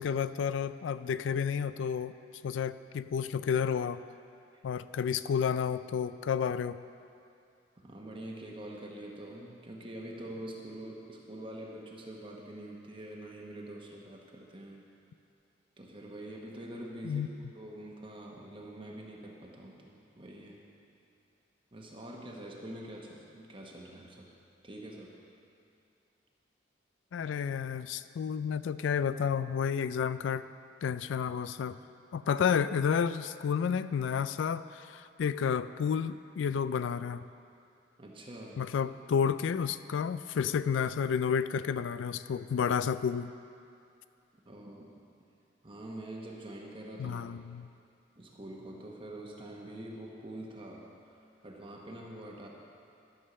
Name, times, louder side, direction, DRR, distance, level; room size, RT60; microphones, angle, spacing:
voice 1, 0.0-2.1 2.4-4.0 4.6-6.8 17.0-17.3 27.1-30.4 30.8-31.8 32.1-37.2 38.6-43.3 47.0-47.7, left 7 dB, 85° left, 14 dB, 0.3 m, -31 dB
voice 2, 7.8-14.9 15.8-17.3 17.5-20.6 21.7-24.3 24.6-25.1 38.0-38.6 44.4-44.9 45.6-47.2 48.2-52.5, right 1 dB, 30° right, -2 dB, 1.1 m, -45 dB
13.0 x 5.5 x 6.6 m, 2.5 s
head